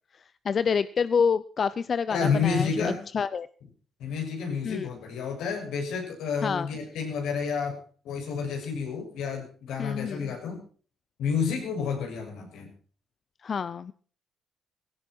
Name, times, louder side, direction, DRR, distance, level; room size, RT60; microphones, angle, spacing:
voice 1, 0.4-3.5 4.6-4.9 6.4-6.7 9.8-10.4 13.4-13.9, left 6 dB, 45° left, 15 dB, 0.6 m, -27 dB
voice 2, 2.1-3.0 4.0-7.8 8.0-10.6 11.2-12.7, left 5 dB, 85° left, 3 dB, 6.7 m, -30 dB
17.5 x 16.5 x 4.5 m, 0.43 s
cardioid pair, 90°, 0 cm